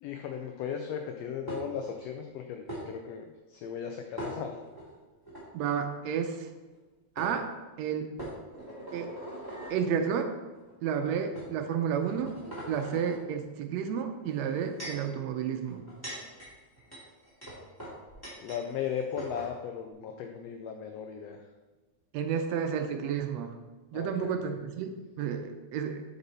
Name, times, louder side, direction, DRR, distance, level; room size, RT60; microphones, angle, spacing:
voice 1, 0.0-4.6 18.4-21.4 23.9-24.3, left 7 dB, 80° left, 4 dB, 1.5 m, -37 dB
sound 1, 1.5-1.9 2.7-2.8 4.2-4.8 5.3-5.4 6.7-6.8 7.2-7.3 8.2-9.8 10.6-10.7 11.3-11.5 12.0-13.2 14.3-15.1 15.7-18.6 18.9-19.0 19.2-19.5, right 1 dB, 10° left, 2.0 m, -41 dB
voice 2, 5.5-6.5 7.2-7.5 7.8-8.1 8.9-9.1 9.7-10.3 10.8-12.3 12.7-15.8 22.1-23.6 23.9-26.0, right 7 dB, 75° right, 6 dB, 1.6 m, -31 dB
8.1 x 5.3 x 4.1 m, 1.2 s
omnidirectional pair, 3.4 m